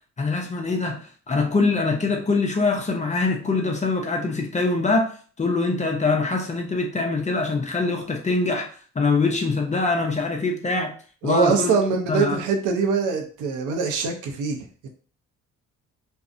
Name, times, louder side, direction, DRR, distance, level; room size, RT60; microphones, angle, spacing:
voice 1, 0.2-1.0 1.3-5.1 5.4-8.7 9.0-10.9 11.2-11.7 12.1-12.4, left 3 dB, 25° left, 2 dB, 0.5 m, -23 dB
voice 2, 11.2-14.9, right 5 dB, 85° right, 2 dB, 0.6 m, -23 dB
2.6 x 2.0 x 2.5 m, 0.41 s
cardioid pair, 90°, 30 cm